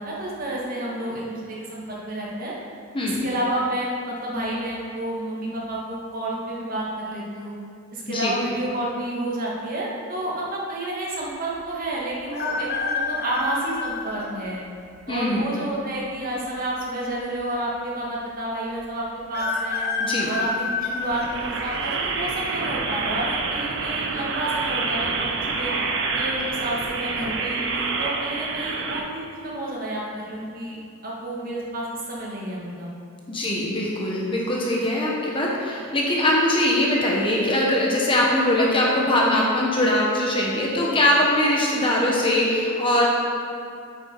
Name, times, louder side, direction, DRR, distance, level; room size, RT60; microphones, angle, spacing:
voice 1, 0.0-2.5 3.0-7.5 7.9-14.6 15.1-19.8 20.3-25.7 26.1-30.8 31.0-32.9, right 1 dB, 40° right, -4 dB, 1.7 m, -30 dB
voice 2, 2.9-3.2 8.1-8.3 15.1-15.4 20.0-20.3 33.3-43.0, left 1 dB, 25° left, -3 dB, 1.1 m, -22 dB
sound 1, 12.3-14.3 15.0-15.1 16.2-16.8 17.1-17.2 17.4-17.5 19.3-21.9 22.5-22.9 24.0-24.4 24.6-24.7 25.2-25.6 26.1-26.3, left 4 dB, 45° left, 0.9 m, -29 dB
sound 2, 21.0-29.0, right 4 dB, 60° right, 0.8 m, -27 dB
8.5 x 7.1 x 4.6 m, 2.4 s
head